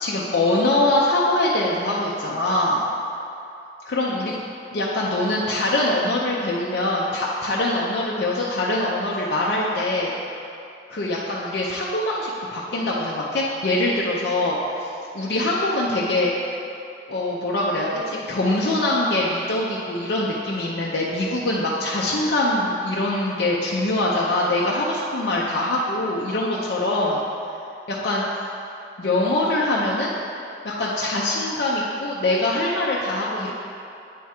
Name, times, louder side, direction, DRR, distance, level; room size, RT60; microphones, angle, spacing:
voice 1, 0.0-2.8 3.9-4.4 4.7-10.1 10.9-14.9 15.1-16.3 17.1-27.2 27.9-28.2 29.0-30.1 30.6-33.5, left 1 dB, 60° left, -5 dB, 0.6 m, -23 dB
8.4 x 3.5 x 4.3 m, 2.7 s
head